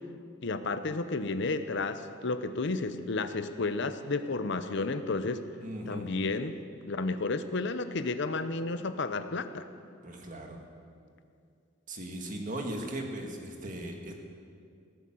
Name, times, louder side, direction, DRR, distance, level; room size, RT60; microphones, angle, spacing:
voice 1, 0.4-5.4 5.9-6.5 6.8-9.7, left 3 dB, 60° left, 10 dB, 0.7 m, -32 dB
voice 2, 5.6-6.1 10.0-10.6 11.9-14.1, right 1 dB, 40° right, 2 dB, 1.8 m, -38 dB
16.5 x 8.4 x 7.8 m, 2.3 s
head